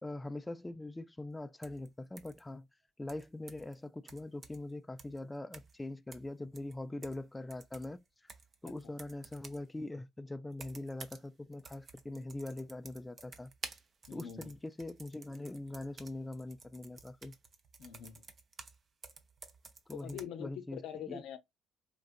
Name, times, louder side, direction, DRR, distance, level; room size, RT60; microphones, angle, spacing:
voice 1, 0.0-2.7 3.0-8.0 8.6-13.5 14.1-17.3 19.9-20.8 21.1-21.2, left 2 dB, 15° left, 0.3 m, -42 dB
sound 1, 1.6-1.9 2.2-2.4 3.1-3.7 4.1-4.7 5.0-5.2 5.5-5.8 6.1-7.2 7.5-9.7 10.5-11.3 11.5-18.8 19.0-20.2, right 4 dB, 45° right, 0.7 m, -52 dB
voice 2, 14.1-14.5 17.8-18.3 19.9-21.4, left 9 dB, 70° left, 0.6 m, -44 dB
3.8 x 2.4 x 2.5 m
hypercardioid pair, 55°, 0 cm